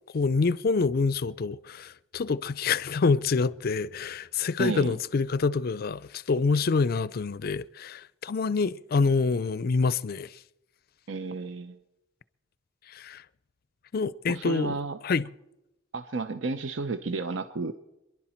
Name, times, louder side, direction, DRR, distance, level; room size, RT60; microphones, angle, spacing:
voice 1, 0.1-10.4 12.9-13.2 13.9-14.8 15.0-15.3, left 4 dB, 50° left, 0.4 m, -26 dB
voice 2, 4.6-4.9 11.1-11.8 14.3-15.0 15.9-17.8, right 3 dB, 75° right, 0.7 m, -32 dB
27.5 x 11.0 x 4.4 m
head